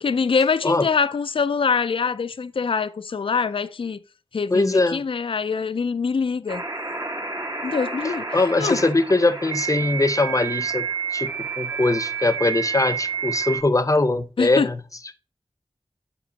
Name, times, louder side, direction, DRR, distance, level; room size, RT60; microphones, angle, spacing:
voice 1, 0.0-4.0 4.3-6.6 7.6-8.2 8.6-8.8 14.4-14.7, left 5 dB, 65° left, 0.4 m, -24 dB
voice 2, 4.5-5.0 8.3-14.8, left 2 dB, 35° left, 0.7 m, -21 dB
sound 1, 6.5-13.6, right 6 dB, 40° right, 1.2 m, -29 dB
7.6 x 5.2 x 4.0 m
wide cardioid pair, 65°, 10 cm